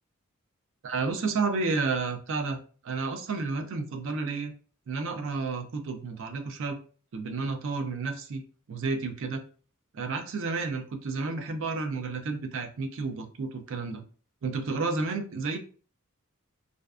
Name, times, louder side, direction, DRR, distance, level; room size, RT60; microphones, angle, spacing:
voice 1, 0.8-2.6 2.8-4.5 4.9-6.8 7.1-8.4 8.7-9.4 9.9-14.0 14.4-15.6, right 4 dB, 60° right, 6 dB, 0.4 m, -31 dB
2.5 x 2.1 x 2.3 m, 0.40 s
head